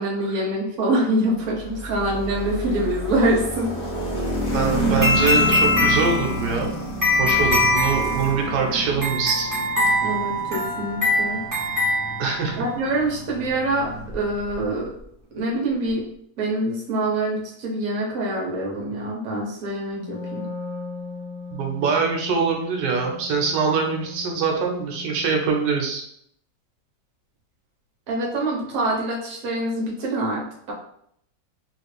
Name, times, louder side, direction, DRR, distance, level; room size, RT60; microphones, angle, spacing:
voice 1, 0.0-3.7 10.0-11.4 12.6-14.9 15.3-16.0 16.4-20.4 28.1-30.4, right 1 dB, 55° right, -2 dB, 1.2 m, -25 dB
sound 1, 1.5-14.6, right 1 dB, 25° left, 1.1 m, -29 dB
voice 2, 4.5-6.7 7.2-9.5 12.2-12.6 21.5-26.0, right 5 dB, 85° right, 1 dB, 1.3 m, -23 dB
sound 2, 5.0-12.7, left 2 dB, 15° right, 0.7 m, -23 dB
Wind instrument woodwind instrument, 19.9-25.6, left 3 dB, 85° left, 1.7 m, -38 dB
3.5 x 2.5 x 3.2 m, 0.70 s
omnidirectional pair, 1.8 m